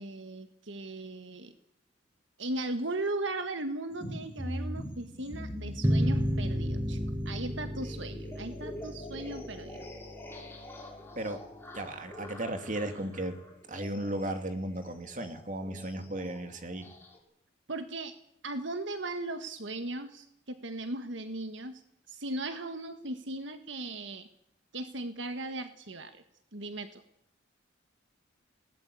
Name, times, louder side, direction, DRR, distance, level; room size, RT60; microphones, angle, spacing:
voice 1, 0.0-1.5 2.4-7.0 7.2-9.9 17.7-18.2 18.4-21.8 22.1-24.3 24.7-26.2 26.5-27.0, right 2 dB, 70° right, 8 dB, 1.6 m, -37 dB
sound 1, 3.9-17.2, left 1 dB, 10° left, 5.2 m, -43 dB
sound 2, 5.8-11.0, equal, 15° right, 1.0 m, -32 dB
voice 2, 11.7-13.4 13.7-16.9, right 1 dB, 40° right, 7 dB, 2.5 m, -35 dB
21.0 x 18.5 x 8.4 m, 0.77 s
head